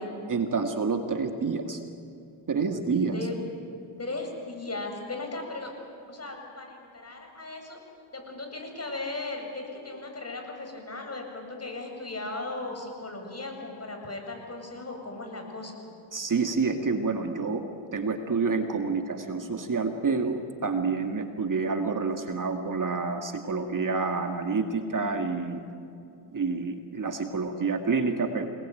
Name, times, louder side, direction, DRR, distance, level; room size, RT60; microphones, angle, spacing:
voice 1, 0.3-1.8 2.5-3.2 16.1-17.6 17.9-25.6 26.3-28.5, right 4 dB, 40° right, 5 dB, 2.3 m, -28 dB
voice 2, 3.1-3.4 4.0-5.7 6.1-7.8 8.1-15.7, left 2 dB, 30° left, 3 dB, 7.5 m, -37 dB
28.0 x 20.5 x 9.3 m, 2.5 s
supercardioid pair, 65°, 50 cm